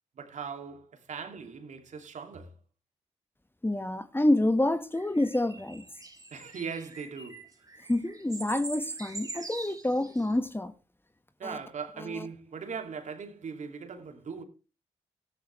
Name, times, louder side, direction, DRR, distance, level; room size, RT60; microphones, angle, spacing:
voice 1, 0.1-2.5 6.3-7.5 11.4-14.4, right 6 dB, 70° right, 2.7 m, -39 dB
voice 2, 3.6-5.8 7.9-10.7, left 1 dB, 15° left, 1.6 m, -27 dB
sound 1, 4.9-10.3, right 3 dB, 25° right, 3.8 m, -43 dB
14.0 x 11.5 x 3.3 m
supercardioid pair, 45°, 13 cm